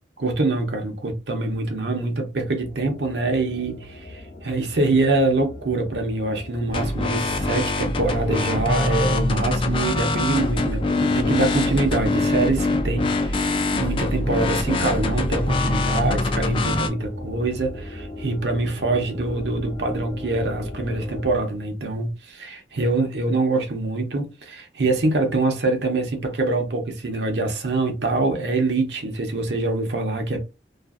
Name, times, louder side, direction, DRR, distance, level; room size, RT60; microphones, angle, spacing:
voice 1, 0.2-30.4, right 2 dB, 75° right, 0.7 m, -24 dB
sound 1, 2.6-21.4, left 1 dB, 65° left, 0.6 m, -37 dB
sound 2, 6.7-16.9, left 2 dB, 30° left, 0.3 m, -24 dB
2.5 x 2.5 x 2.3 m
head